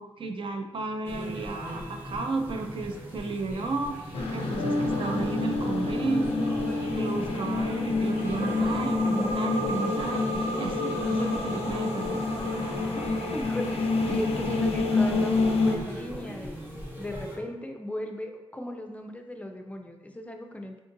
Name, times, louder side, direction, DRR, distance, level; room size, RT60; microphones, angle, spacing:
voice 1, 0.0-6.5 6.8-10.2 10.6-12.2, right 3 dB, 55° right, 4 dB, 0.4 m, -33 dB
sound 1, 1.0-17.4, equal, 20° right, 1.0 m, -39 dB
sound 2, 4.1-15.8, left 3 dB, 75° left, 0.5 m, -27 dB
voice 2, 12.9-16.6 17.0-20.8, left 1 dB, 15° left, 4 dB, 0.4 m, -37 dB
3.6 x 2.5 x 2.6 m, 1.1 s
cardioid pair, 70°, 10 cm